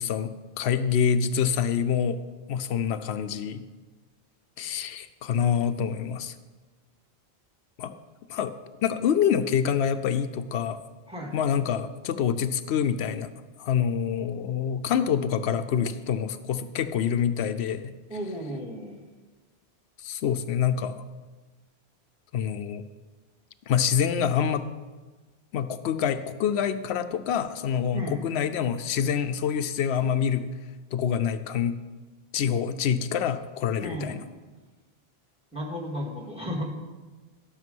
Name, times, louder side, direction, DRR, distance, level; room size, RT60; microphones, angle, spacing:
voice 1, 0.0-2.2 2.5-3.6 4.6-6.3 7.8-7.9 8.3-8.5 8.8-10.8 11.3-13.3 13.6-17.9 20.0-21.0 22.3-22.8 23.7-24.7 25.5-30.5 30.9-31.8 32.3-34.2, left 8 dB, 90° left, 10 dB, 0.8 m, -26 dB
voice 2, 11.1-11.4 18.1-19.0 27.9-28.2 33.8-34.2 35.5-36.7, equal, 5° right, 0 dB, 2.0 m, -34 dB
12.5 x 6.7 x 5.3 m, 1.3 s
omnidirectional pair, 1.1 m